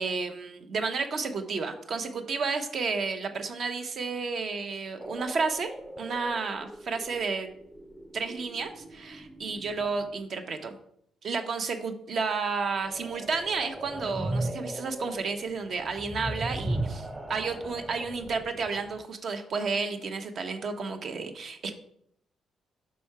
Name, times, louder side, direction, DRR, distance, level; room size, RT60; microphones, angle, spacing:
voice 1, 0.0-5.7 6.0-7.5 8.1-10.8 11.2-21.7, right 4 dB, 55° right, 6 dB, 0.8 m, -31 dB
sound 1, 5.0-10.1 12.7-19.0, right 1 dB, 10° right, 0.5 m, -38 dB
5.7 x 4.2 x 4.6 m, 0.71 s
cardioid pair, 90°, 0 cm